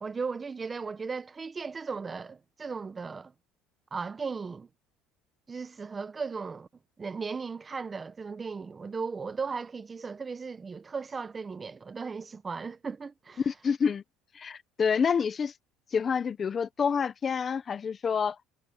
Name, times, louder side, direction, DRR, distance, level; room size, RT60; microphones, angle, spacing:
voice 1, 0.0-3.3 3.9-4.7 5.5-6.7 7.0-13.4, right 5 dB, 20° right, 0.9 m, -36 dB
voice 2, 13.4-14.0 14.3-15.5 15.9-18.4, left 6 dB, 30° left, 1.1 m, -28 dB
cardioid pair, 125°, 0 cm